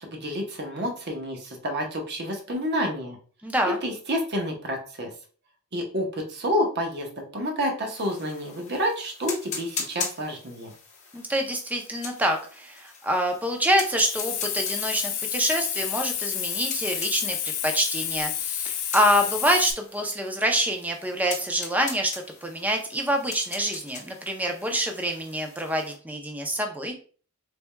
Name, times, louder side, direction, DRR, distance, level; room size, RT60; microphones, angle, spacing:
voice 1, 0.0-3.2 3.6-5.1 5.7-10.7, equal, 50° right, 2 dB, 0.9 m, -29 dB
voice 2, 3.4-3.8 11.1-26.9, equal, 5° right, 3 dB, 0.5 m, -26 dB
sound 1, 7.9-26.0, left 5 dB, 30° left, 0.9 m, -41 dB
Hiss, 14.0-19.7, left 9 dB, 80° left, 0.6 m, -30 dB
4.1 x 3.4 x 2.2 m, 0.41 s
head